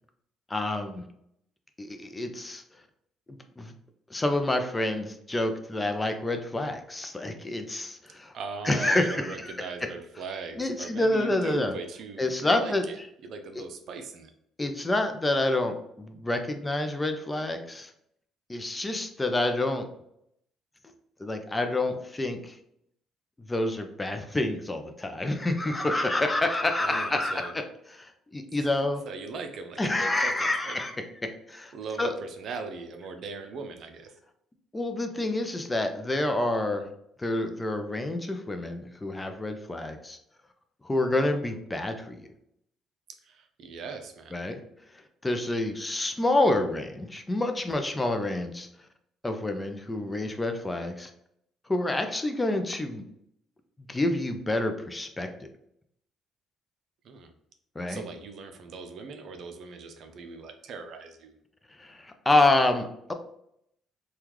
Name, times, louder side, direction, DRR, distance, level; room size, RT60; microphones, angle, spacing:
voice 1, 0.5-1.0 1.8-2.6 3.3-3.7 4.1-8.3 8.6-9.9 10.6-11.7 12.2-12.9 14.6-15.8 16.1-17.9 18.5-19.9 21.2-22.6 23.5-27.6 27.9-29.0 29.8-31.0 31.2-32.1 34.7-36.9 37.2-40.2 40.8-42.3 44.3-44.6 45.2-48.7 49.2-51.1 51.7-53.0 53.9-55.3 57.8-58.0 61.8-63.1, left 2 dB, 20° left, 6 dB, 0.5 m, -28 dB
voice 2, 8.3-13.0 13.2-14.3 26.8-27.5 28.6-28.7 29.1-30.8 31.7-34.2 43.2-44.4 57.0-57.3 57.9-61.4, right 4 dB, 65° right, 6 dB, 0.5 m, -39 dB
3.4 x 2.3 x 3.0 m, 0.73 s
supercardioid pair, 80°, 0 cm